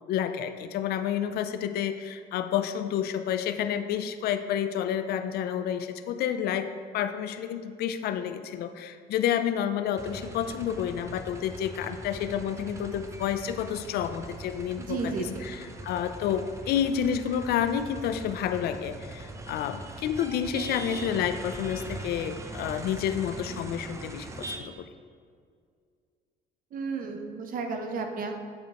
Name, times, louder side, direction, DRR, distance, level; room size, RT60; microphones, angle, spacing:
voice 1, 0.1-24.9, left 9 dB, 70° left, 10 dB, 0.4 m, -30 dB
sound 1, 10.0-24.6, right 2 dB, 15° right, 0.5 m, -41 dB
voice 2, 14.8-15.5 26.7-28.3, right 4 dB, 55° right, 4 dB, 0.8 m, -33 dB
8.9 x 5.2 x 3.0 m, 2.1 s
cardioid pair, 110°, 17 cm